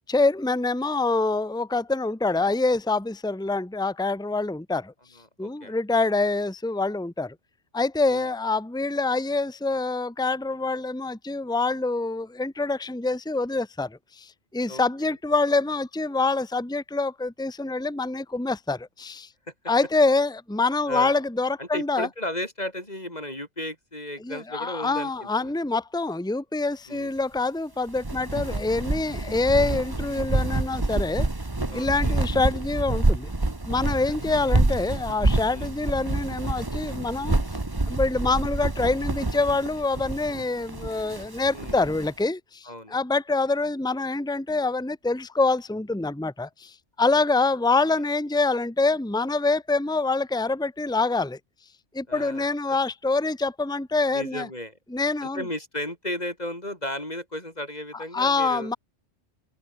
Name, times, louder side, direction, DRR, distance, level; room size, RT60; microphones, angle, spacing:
voice 1, 0.1-4.9 5.4-7.3 7.7-19.3 19.7-22.1 24.2-31.3 31.7-33.3 33.7-37.3 37.9-51.4 51.9-54.5 54.9-55.4 58.1-58.8, left 3 dB, 5° left, 1.3 m, -25 dB
voice 2, 5.2-5.8 8.1-8.3 14.7-15.1 20.9-21.2 21.6-25.5 26.9-27.1 31.7-32.2 34.1-34.4 35.5-35.7 41.5-41.8 42.6-43.0 47.1-47.2 52.1-52.8 54.1-54.7 55.2-58.7, left 1 dB, 35° left, 6.2 m, -35 dB
sound 1, 27.9-42.1, right 2 dB, 20° right, 1.5 m, -27 dB
omnidirectional pair, 1.2 m